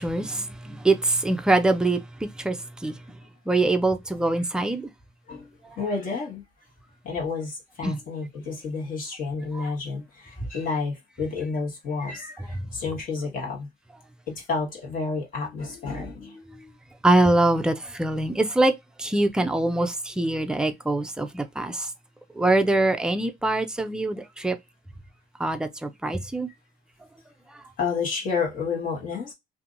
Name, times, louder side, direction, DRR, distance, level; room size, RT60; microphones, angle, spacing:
voice 1, 0.0-3.0 3.5-4.9 7.8-8.0 9.5-9.7 12.4-12.5 17.0-21.9 22.4-24.6 25.4-26.5 27.5-27.6, right 2 dB, 5° right, 0.4 m, -24 dB
voice 2, 5.8-6.4 7.0-13.7 14.3-16.7 20.3-20.6 27.8-29.3, left 4 dB, 55° left, 1.4 m, -30 dB
2.8 x 2.6 x 2.5 m
cardioid pair, 110°, 17 cm